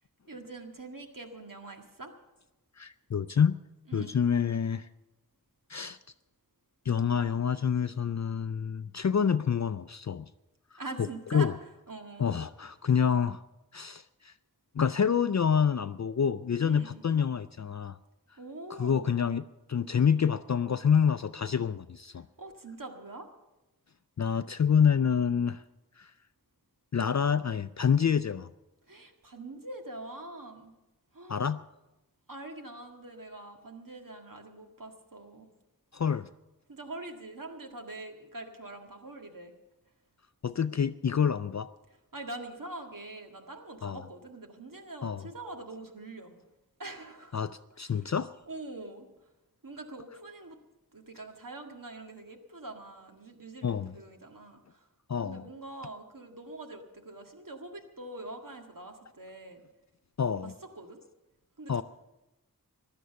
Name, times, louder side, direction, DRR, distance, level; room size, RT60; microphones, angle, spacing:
voice 1, 0.3-2.1 3.9-4.2 10.8-11.5 11.9-12.3 16.6-17.0 18.4-19.2 22.1-23.3 28.9-30.7 31.1-31.4 32.3-35.5 36.7-39.5 42.1-46.4 46.8-47.4 47.8-48.0 48.5-49.1 49.6-50.6 50.9-54.9 55.2-59.6 60.4-61.0 61.6-61.8, right 2 dB, 60° right, 4 dB, 1.9 m, -44 dB
voice 2, 2.8-3.6 3.9-4.9 5.7-6.0 6.9-10.3 11.3-11.5 12.2-13.4 13.7-14.3 14.7-18.0 18.7-19.4 19.7-22.2 24.2-25.6 26.0-26.1 26.9-28.5 31.3-31.6 35.9-36.3 40.4-41.7 43.8-44.0 45.0-45.3 47.3-48.3 53.6-53.9 55.1-55.4 60.2-60.5 61.7-61.8, left 7 dB, 50° left, 12 dB, 0.4 m, -27 dB
16.0 x 11.5 x 6.9 m, 0.98 s
wide cardioid pair, 45°, 36 cm